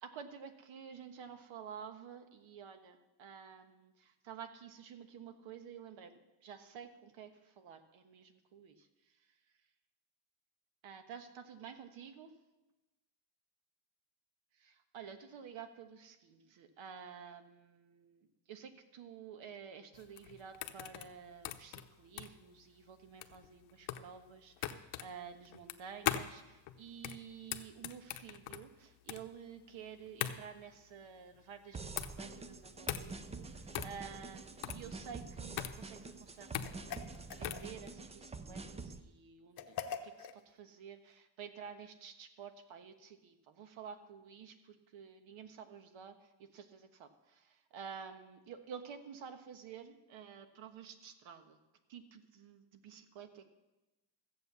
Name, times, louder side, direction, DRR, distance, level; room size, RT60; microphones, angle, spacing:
voice 1, 0.0-8.9 10.8-12.3 14.5-36.5 37.4-51.6 51.9-53.6, right 7 dB, 75° right, 8 dB, 1.4 m, -51 dB
sound 1, 19.9-37.7, left 12 dB, 85° left, 0.9 m, -41 dB
sound 2, 31.7-39.0, right 4 dB, 15° right, 0.4 m, -47 dB
sound 3, 36.6-38.0 39.6-40.4, left 7 dB, 50° left, 0.8 m, -44 dB
14.5 x 7.9 x 6.9 m, 1.0 s
cardioid pair, 145°, 47 cm